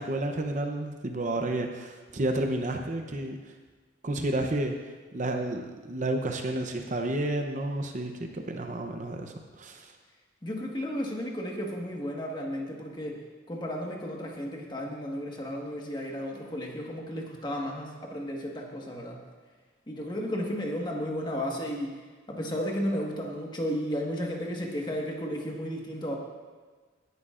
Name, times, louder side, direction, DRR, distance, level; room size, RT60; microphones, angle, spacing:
voice 1, 0.0-3.4 4.0-4.7 5.1-9.9, right 1 dB, 40° right, 4 dB, 0.7 m, -31 dB
voice 2, 10.4-13.2 13.5-19.2 19.9-21.9 22.3-26.2, equal, 25° left, -1 dB, 1.5 m, -33 dB
17.5 x 11.0 x 2.5 m, 1.4 s
head